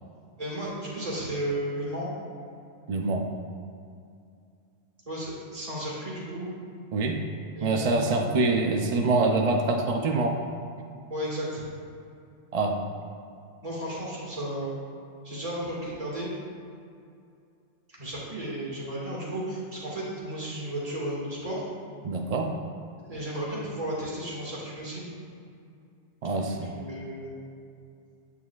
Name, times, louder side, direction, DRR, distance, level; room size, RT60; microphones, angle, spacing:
voice 1, 0.4-2.1 5.0-6.5 7.5-8.3 11.1-11.6 13.6-14.7 15.2-16.3 18.0-21.6 23.0-25.1 26.5-27.3, right 1 dB, 30° right, -6 dB, 1.7 m, -34 dB
voice 2, 2.9-3.3 6.9-7.2 7.6-10.4 12.5-12.8 22.0-22.5 26.2-26.7, right 3 dB, 65° right, 2 dB, 0.3 m, -25 dB
8.2 x 7.3 x 2.3 m, 2.4 s
omnidirectional pair, 1.2 m